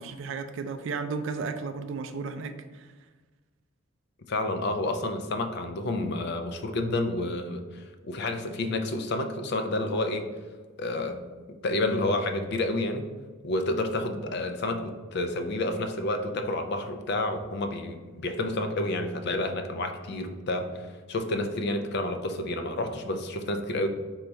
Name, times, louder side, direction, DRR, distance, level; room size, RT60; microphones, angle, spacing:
voice 1, 0.0-2.9, right 4 dB, 60° right, 9 dB, 0.3 m, -34 dB
voice 2, 4.3-10.3 10.8-11.2 11.6-13.0 13.4-23.9, left 2 dB, 50° left, 6 dB, 0.4 m, -29 dB
4.3 x 2.3 x 3.9 m, 1.3 s
head